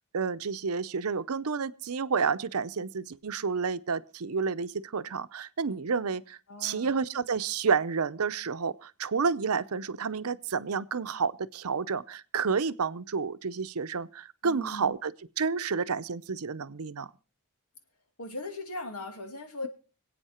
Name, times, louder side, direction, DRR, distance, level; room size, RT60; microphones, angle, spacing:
voice 1, 0.1-17.1, right 5 dB, 75° right, 0.7 m, -30 dB
voice 2, 6.5-6.9 14.4-15.0 18.2-19.7, left 2 dB, 90° left, 2.5 m, -39 dB
25.0 x 8.7 x 4.4 m
head